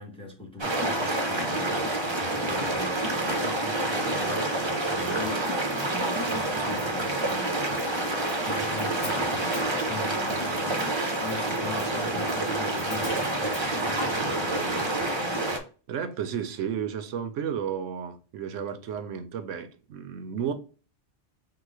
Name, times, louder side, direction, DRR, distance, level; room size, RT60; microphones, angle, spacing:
voice 1, 0.0-1.9 2.4-5.5 6.3-9.3 9.8-10.9 11.2-15.1, left 2 dB, 5° left, 0.9 m, -41 dB
sound 1, 0.6-15.6, right 2 dB, 25° right, 0.8 m, -28 dB
Hi-hat, 5.8-13.7, left 2 dB, 45° left, 1.5 m, -49 dB
voice 2, 15.9-20.5, right 8 dB, 80° right, 1.0 m, -33 dB
3.9 x 2.5 x 4.7 m
omnidirectional pair, 1.3 m